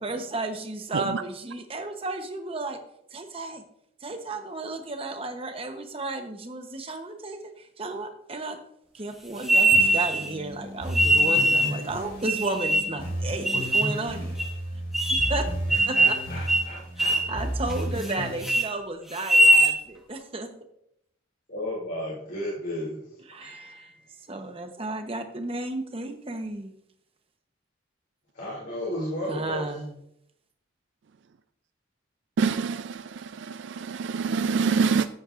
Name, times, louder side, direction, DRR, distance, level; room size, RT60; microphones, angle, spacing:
voice 1, 0.0-2.8 3.1-3.6 4.0-8.6 8.9-14.4 14.7-14.8 15.3-15.4 15.9-16.0 17.0-20.5 23.3-23.9 24.3-26.7 29.3-30.0, right 2 dB, 30° right, 6 dB, 0.9 m, -33 dB
sound 1, 9.4-10.3 10.9-11.8 12.2-13.0 13.4-13.9 14.4-14.5 14.9-15.4 15.7-16.2 16.5-16.7 17.0-17.3 17.7-18.1 18.4-18.7 19.2-19.7, right 1 dB, ahead, 1.3 m, -21 dB
sound 2, 9.7-18.4, equal, 75° left, 3.9 m, -33 dB
voice 2, 15.7-17.2 21.5-23.0 23.4-24.1 28.3-29.7, left 1 dB, 55° left, -6 dB, 2.9 m, -34 dB
voice 3, 32.4-35.1, right 5 dB, 65° right, 12 dB, 0.3 m, -26 dB
14.0 x 8.5 x 2.5 m, 0.75 s
head